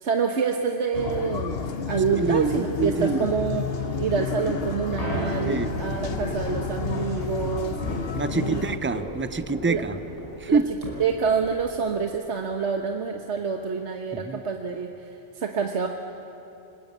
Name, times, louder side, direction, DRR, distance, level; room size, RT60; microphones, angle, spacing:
voice 1, 0.0-7.8 8.3-8.6 9.7-9.8 10.5-10.6 11.0-15.9, right 6 dB, 75° right, 4 dB, 1.5 m, -27 dB
sound 1, 0.9-8.8, left 6 dB, 60° left, 1.2 m, -31 dB
voice 2, 2.2-3.3 5.4-5.7 8.1-10.0 10.4-10.7 14.1-14.4, right 4 dB, 15° right, 13 dB, 0.4 m, -26 dB
sound 2, 3.8-11.9, equal, 30° left, 7.5 m, -35 dB
29.0 x 20.0 x 8.4 m, 2.7 s
omnidirectional pair, 1.2 m